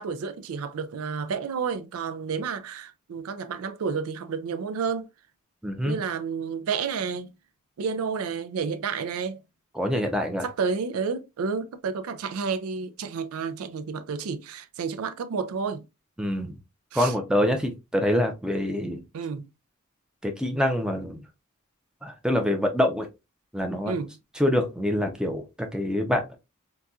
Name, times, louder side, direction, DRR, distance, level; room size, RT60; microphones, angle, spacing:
voice 1, 0.0-5.1 5.8-7.3 7.8-9.4 10.4-15.8 16.9-17.1 19.1-19.5 23.9-24.1, right 5 dB, 80° right, 0.4 m, -30 dB
voice 2, 5.6-6.0 9.7-10.5 16.2-16.6 16.9-19.0 20.2-21.2 22.0-23.1 23.5-24.0 24.4-26.4, left 1 dB, 5° right, 0.5 m, -25 dB
4.0 x 2.3 x 2.3 m
head